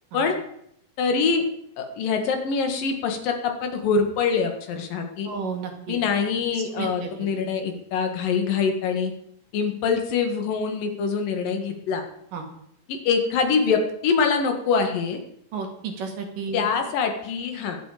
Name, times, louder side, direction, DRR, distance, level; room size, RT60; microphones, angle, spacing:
voice 1, 1.0-1.4 1.8-5.3 5.9-9.1 9.5-12.0 12.9-15.2 16.5-17.8, left 5 dB, 85° left, 5 dB, 3.5 m, -24 dB
voice 2, 5.3-6.0 6.5-7.3 12.3-12.4 15.5-16.7, right 5 dB, 75° right, 3 dB, 3.7 m, -33 dB
22.5 x 8.3 x 5.0 m, 0.73 s
omnidirectional pair, 3.8 m